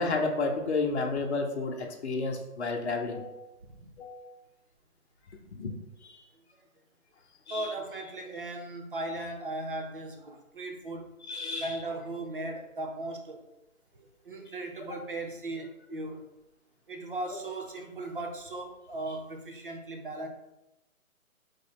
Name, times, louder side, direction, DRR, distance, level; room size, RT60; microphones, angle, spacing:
voice 1, 0.0-3.5 4.0-4.3 5.5-5.7 6.0-6.2 7.5-7.7 11.3-11.8 14.9-15.0 17.3-17.4, left 3 dB, 50° left, 2 dB, 0.8 m, -31 dB
voice 2, 7.5-11.1 11.6-13.4 13.9-16.2 16.9-20.3, right 2 dB, 40° right, 3 dB, 0.6 m, -37 dB
4.0 x 3.2 x 4.2 m, 0.95 s
hypercardioid pair, 160°, 44 cm